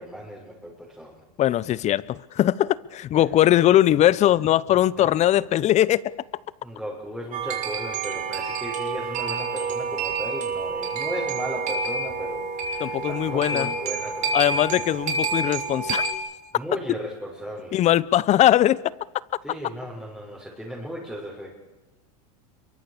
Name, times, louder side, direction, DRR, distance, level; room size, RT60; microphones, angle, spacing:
voice 1, 0.0-1.2 3.2-3.3 5.0-5.2 6.6-15.5 16.5-17.8 19.4-21.5, equal, ahead, 6.4 m, -36 dB
voice 2, 1.4-6.0 12.8-13.7 14.3-16.1 17.7-18.8, left 12 dB, 40° left, 0.9 m, -20 dB
sound 1, 7.3-16.1, right 4 dB, 45° right, 6.5 m, -28 dB
26.0 x 23.5 x 6.8 m
supercardioid pair, 110°, 19 cm